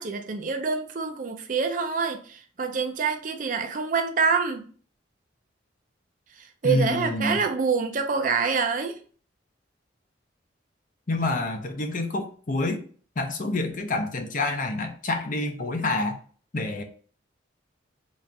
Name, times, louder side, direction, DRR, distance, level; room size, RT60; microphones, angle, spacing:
voice 1, 0.0-4.7 6.4-9.0, right 5 dB, 40° right, 0.4 m, -26 dB
voice 2, 6.6-7.4 11.1-12.8 13.2-16.2 16.5-16.8, left 2 dB, 40° left, 0.6 m, -27 dB
4.1 x 2.5 x 3.3 m
head